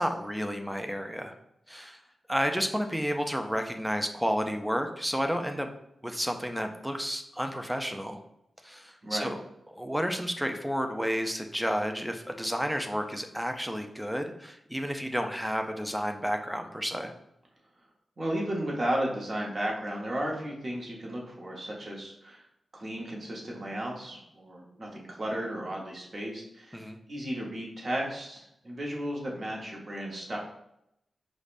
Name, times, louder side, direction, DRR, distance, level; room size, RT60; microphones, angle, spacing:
voice 1, 0.0-1.3 1.7-2.0 2.3-5.7 6.0-8.2 8.6-9.4 9.7-17.1 26.7-27.0, equal, ahead, 5 dB, 0.3 m, -31 dB
voice 2, 18.2-22.4 22.7-30.4, right 1 dB, 40° right, -2 dB, 0.9 m, -34 dB
4.9 x 2.1 x 2.5 m, 0.79 s
wide cardioid pair, 110°, 0 cm